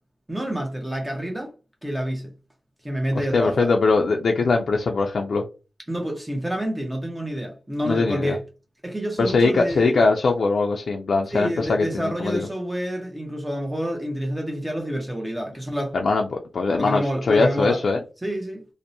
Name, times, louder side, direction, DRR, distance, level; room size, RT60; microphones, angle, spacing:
voice 1, 0.3-1.5 1.8-2.3 2.8-3.7 5.9-8.4 8.8-10.0 11.3-15.9 16.8-17.8 18.2-18.6, equal, 15° right, 0.6 m, -28 dB
voice 2, 3.3-5.4 7.8-8.4 9.2-12.5 15.9-18.0, left 3 dB, 80° left, 0.3 m, -21 dB
2.5 x 2.0 x 2.6 m
wide cardioid pair, 85°, 0 cm